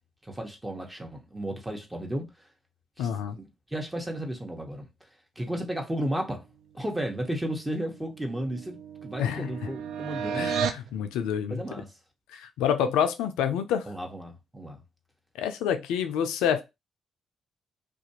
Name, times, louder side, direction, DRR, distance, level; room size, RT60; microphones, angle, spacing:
voice 1, 0.3-2.2 3.0-3.1 3.3-4.9 5.4-6.4 6.7-8.8 9.0-10.5 11.5-11.9 13.9-14.8, right 1 dB, 15° right, 1.0 m, -33 dB
voice 2, 3.0-3.4 9.2-9.5 10.3-11.6 12.3-13.9 15.4-16.6, left 8 dB, 80° left, 0.4 m, -27 dB
sound 1, 7.8-10.9, right 6 dB, 70° right, 0.3 m, -33 dB
2.5 x 2.3 x 2.8 m
hypercardioid pair, 50°, 0 cm